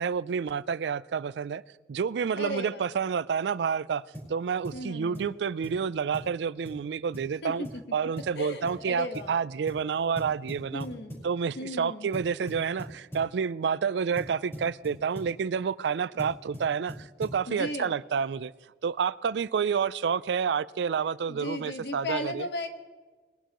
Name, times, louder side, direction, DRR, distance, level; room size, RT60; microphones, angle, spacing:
voice 1, 0.0-1.6 1.9-4.0 4.3-7.6 7.9-10.9 11.2-18.5 18.8-22.5, right 6 dB, 75° right, 0.4 m, -29 dB
voice 2, 2.3-2.9 4.7-5.4 7.4-7.8 8.3-9.3 10.7-11.2 11.6-12.1 17.5-17.9 21.3-22.7, left 1 dB, 65° left, 1.4 m, -36 dB
sound 1, 4.1-4.3 4.6-4.8 5.1-5.4 5.6-5.8 6.1-6.3 6.6-6.8 7.1-7.3 7.6-7.8 8.2-8.4 8.7-8.8 9.1-9.3 9.7-9.9 10.2-11.3 12.1-13.3 14.2-15.4 16.2-17.4, equal, 15° left, 4.5 m, -41 dB
21.0 x 11.5 x 3.0 m
head